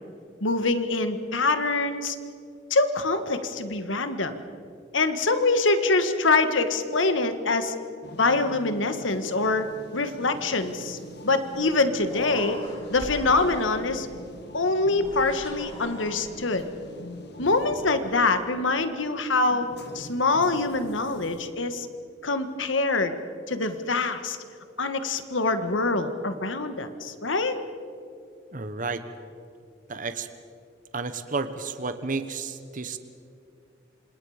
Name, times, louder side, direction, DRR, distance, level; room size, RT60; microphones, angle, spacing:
voice 1, 0.4-2.1 2.7-4.4 4.9-7.7 8.2-9.6 9.9-11.0 11.2-12.6 12.9-14.1 14.5-16.6 17.4-19.7 19.9-21.9 22.2-23.2 23.5-24.4 24.8-27.6, left 3 dB, 85° left, 9 dB, 1.7 m, -24 dB
sound 1, 8.0-21.5, equal, 60° left, 1.8 m, -44 dB
Human voice, 12.0-14.0 14.9-16.6, left 1 dB, 30° left, 4.9 m, -41 dB
voice 2, 28.5-29.0 29.9-30.3 30.9-33.0, right 4 dB, 45° right, 10 dB, 1.1 m, -31 dB
27.5 x 26.5 x 5.1 m, 2.4 s
head